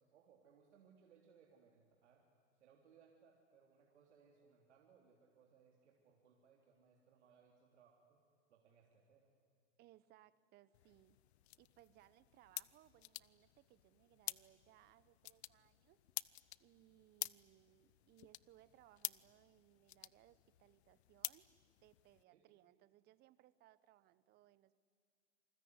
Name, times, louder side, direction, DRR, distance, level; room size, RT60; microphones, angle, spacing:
voice 1, 0.0-2.2 2.6-8.2 8.5-9.3 22.3-22.4, right 6 dB, 80° right, 0 dB, 3.4 m, -68 dB
voice 2, 9.8-11.2 11.6-16.0 16.6-21.4 21.8-24.8, right 15 dB, 30° right, 18 dB, 0.8 m, -67 dB
sound 1, 10.7-22.2, left 16 dB, 65° left, 0.7 m, -51 dB
27.5 x 20.5 x 9.5 m, 2.1 s
hypercardioid pair, 130°, 34 cm